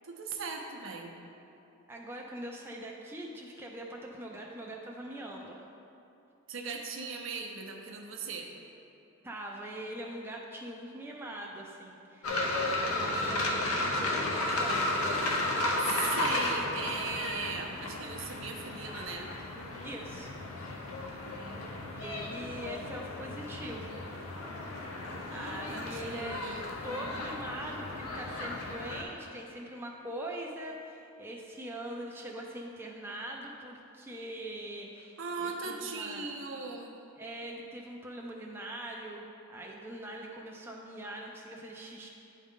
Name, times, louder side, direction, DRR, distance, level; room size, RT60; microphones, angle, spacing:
voice 1, 0.0-1.2 6.5-8.5 12.8-13.7 15.8-19.3 25.3-26.7 35.2-37.0, right 4 dB, 60° right, 2 dB, 0.6 m, -39 dB
voice 2, 1.9-5.6 9.2-12.4 12.7-15.1 19.8-20.3 21.9-24.1 25.3-26.4 26.8-36.3 37.2-42.1, right 1 dB, 10° right, -1 dB, 0.4 m, -42 dB
sound 1, 12.2-29.0, left 2 dB, 90° left, 0.8 m, -34 dB
9.9 x 3.7 x 3.6 m, 2.7 s
head